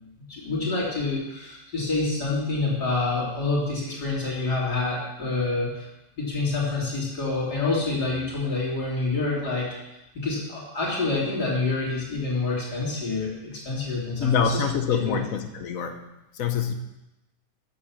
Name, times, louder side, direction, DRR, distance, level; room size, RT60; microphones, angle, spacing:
voice 1, 0.3-5.9 6.2-9.7 10.1-14.6 14.9-15.2, left 3 dB, 90° left, -5 dB, 3.7 m, -27 dB
voice 2, 14.2-16.1 16.3-16.7, left 7 dB, 65° left, 7 dB, 1.3 m, -25 dB
7.8 x 7.7 x 7.2 m, 0.94 s
omnidirectional pair, 1.7 m